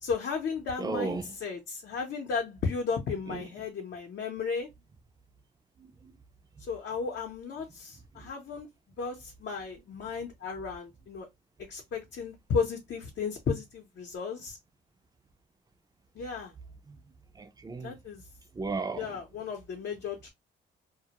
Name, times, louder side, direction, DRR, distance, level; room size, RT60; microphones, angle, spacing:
voice 1, 0.0-4.7 6.7-8.7 9.0-11.3 11.7-14.6 16.2-16.5 17.8-18.2 19.0-20.3, left 5 dB, 60° left, 0.7 m, -34 dB
voice 2, 0.8-1.2 3.3-3.4 5.8-5.9 16.9-17.0 17.4-17.9 18.6-19.1, right 4 dB, 20° right, 0.4 m, -34 dB
2.1 x 2.1 x 2.8 m
cardioid pair, 90°, 20 cm